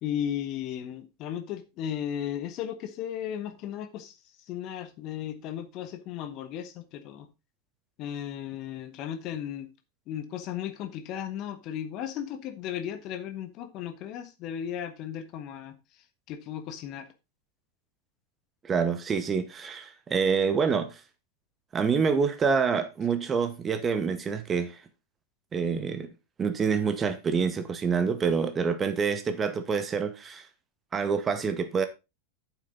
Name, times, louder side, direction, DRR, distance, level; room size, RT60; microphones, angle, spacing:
voice 1, 0.0-4.1 4.5-7.3 8.0-9.7 10.1-15.8 16.3-17.1, left 10 dB, 40° left, 1.4 m, -35 dB
voice 2, 18.6-21.0 21.7-24.8 25.5-26.1 26.4-30.5 30.9-31.9, right 5 dB, 20° right, 1.0 m, -27 dB
9.0 x 7.5 x 4.0 m
figure-of-eight pair, 90°, 0 cm